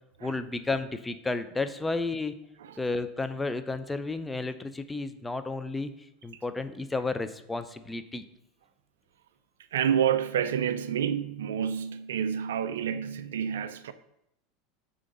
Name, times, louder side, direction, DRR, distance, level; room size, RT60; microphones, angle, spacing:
voice 1, 0.2-2.3 2.8-5.9 6.2-8.2, left 3 dB, 10° left, 0.5 m, -32 dB
voice 2, 9.7-13.9, right 8 dB, 75° right, 0.3 m, -29 dB
6.5 x 3.8 x 5.1 m
hypercardioid pair, 85°, 0 cm